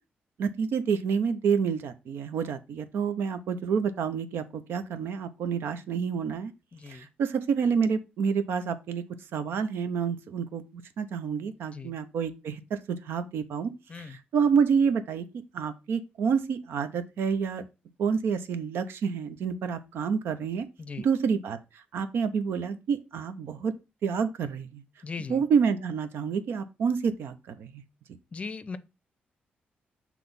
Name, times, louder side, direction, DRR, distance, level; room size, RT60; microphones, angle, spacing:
voice 1, 0.4-6.5 6.9-9.0 9.3-15.2 15.5-17.7 18.0-20.7 21.0-21.6 21.9-23.7 24.0-24.8 25.3-27.8, right 6 dB, 80° right, 0.7 m, -28 dB
voice 2, 6.7-7.1 11.7-12.0 13.9-14.2 20.8-21.1 25.0-25.4 28.3-28.8, left 4 dB, 35° left, 0.5 m, -38 dB
5.9 x 3.1 x 5.2 m
cardioid pair, 105°, 4 cm